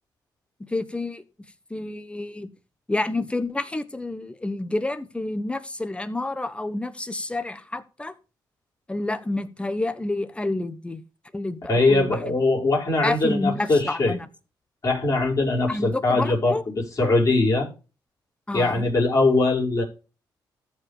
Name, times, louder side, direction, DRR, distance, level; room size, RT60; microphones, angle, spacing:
voice 1, 0.6-1.2 1.7-2.5 2.9-8.1 8.9-11.0 11.3-12.3 13.0-14.3 15.7-16.6 18.5-18.8, left 2 dB, 15° left, 1.2 m, -29 dB
voice 2, 11.7-14.2 14.8-17.7 18.5-19.8, left 2 dB, 45° left, 5.0 m, -21 dB
14.0 x 5.1 x 4.8 m
cardioid pair, 90°, 8 cm